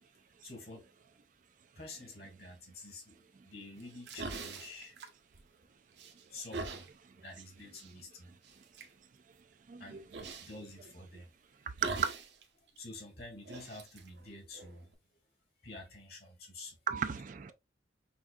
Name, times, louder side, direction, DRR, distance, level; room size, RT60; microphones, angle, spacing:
voice 1, 0.4-0.9 1.8-4.9 6.3-8.4 9.8-10.1 10.4-11.3 12.7-14.9 15.6-16.8, left 2 dB, 60° left, 1.9 m, -49 dB
sound 1, 3.8-5.6 6.0-6.9 7.7-7.9 8.4-8.9 10.1-10.6 11.8-12.4 12.7-12.8 13.4-14.9, right 3 dB, 75° right, 0.9 m, -43 dB
voice 2, 9.7-10.2 11.8-12.1 16.9-17.5, right 7 dB, 45° right, 0.4 m, -34 dB
5.7 x 2.6 x 2.4 m
head